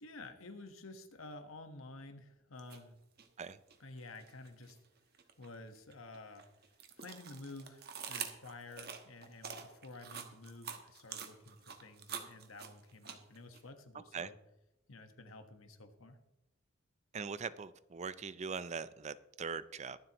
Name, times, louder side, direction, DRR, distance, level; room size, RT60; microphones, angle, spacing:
voice 1, 0.0-3.0 3.8-4.8 5.4-6.5 7.0-14.3 14.9-16.2, left 2 dB, 90° left, 1.4 m, -51 dB
sound 1, 2.6-2.8 3.2-4.7 5.1-13.6, right 7 dB, 50° right, 1.3 m, -46 dB
voice 2, 17.1-20.0, right 5 dB, 35° right, 0.4 m, -41 dB
22.5 x 7.5 x 3.0 m
head